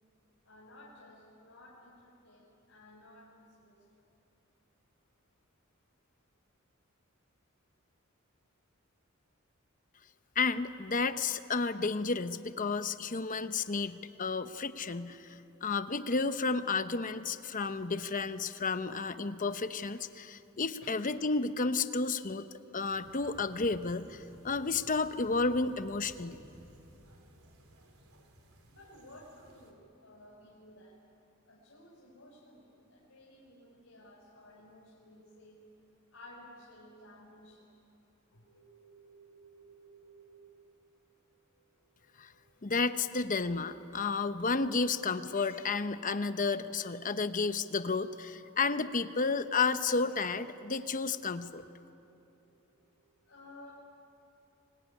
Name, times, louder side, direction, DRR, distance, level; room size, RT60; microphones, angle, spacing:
voice 1, 0.4-3.8 20.8-21.0 28.6-31.0 31.5-35.6 36.1-37.7 38.3-42.7 51.8-53.8, left 1 dB, 70° left, -5 dB, 4.6 m, -56 dB
voice 2, 10.4-15.2 15.6-22.5 22.7-26.4 42.2-42.3 42.6-51.6, left 4 dB, 40° left, 11 dB, 0.9 m, -32 dB
sound 1, 22.9-29.7, right 1 dB, 90° right, 3.6 m, -57 dB
25.5 x 21.0 x 9.9 m, 2.9 s
head